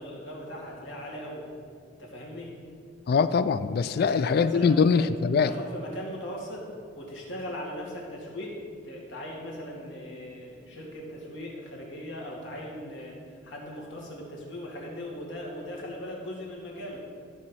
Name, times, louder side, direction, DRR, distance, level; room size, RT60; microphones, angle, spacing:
voice 1, 0.0-1.5 2.0-2.6 3.9-5.1 5.4-6.7 6.9-17.0, equal, 75° left, -3 dB, 2.1 m, -39 dB
voice 2, 3.1-5.5, left 5 dB, 55° left, 13 dB, 0.3 m, -23 dB
12.5 x 4.2 x 6.2 m, 2.2 s
head